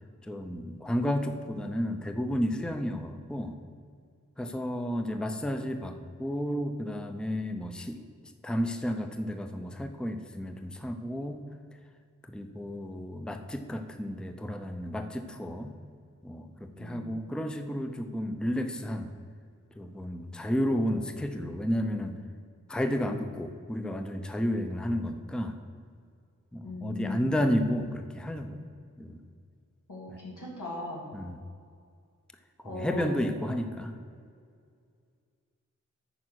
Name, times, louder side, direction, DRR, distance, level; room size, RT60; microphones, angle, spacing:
voice 1, 0.3-3.5 4.4-8.0 8.4-11.4 12.3-15.7 16.2-19.1 19.8-22.1 22.7-25.5 26.5-28.6 29.0-29.2 30.1-30.2 31.1-31.4 32.6-33.9, equal, 5° left, 7 dB, 0.6 m, -32 dB
voice 2, 16.8-17.1 26.6-27.3 29.9-31.0 32.6-33.1, left 2 dB, 90° left, -4 dB, 2.5 m, -38 dB
9.2 x 4.9 x 6.2 m, 2.2 s
wide cardioid pair, 70°, 31 cm